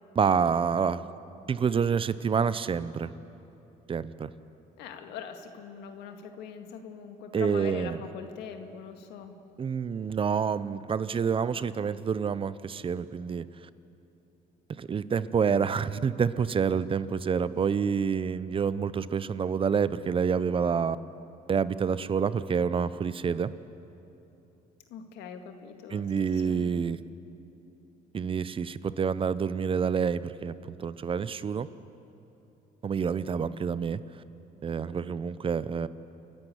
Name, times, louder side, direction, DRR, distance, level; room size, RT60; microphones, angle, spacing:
voice 1, 0.1-1.0 1.5-3.1 3.9-4.3 7.3-8.0 9.6-13.4 14.8-21.0 21.5-23.5 25.9-27.0 28.1-31.7 32.8-34.0 34.6-35.9, right 6 dB, 30° right, 16 dB, 0.6 m, -28 dB
voice 2, 4.8-9.4 24.9-26.7, left 7 dB, 90° left, 6 dB, 1.9 m, -42 dB
29.5 x 11.0 x 9.9 m, 2.9 s
cardioid pair, 110°, 17 cm